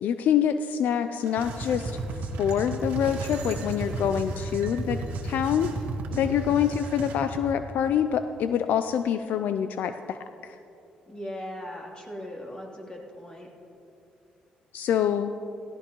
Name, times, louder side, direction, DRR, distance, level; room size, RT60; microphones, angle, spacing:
voice 1, 0.0-2.0 2.4-5.0 5.2-5.7 6.2-10.2 10.4-10.6 14.7-15.3, left 9 dB, 75° left, 10 dB, 0.4 m, -26 dB
sound 1, 1.2-7.2, right 6 dB, 90° right, 1.9 m, -47 dB
sound 2, 1.4-7.5, right 2 dB, 70° right, 1.4 m, -34 dB
voice 2, 6.1-6.5 11.1-13.5, left 1 dB, 30° left, -2 dB, 3.1 m, -39 dB
17.5 x 15.0 x 3.1 m, 2.8 s
supercardioid pair, 70°, 3 cm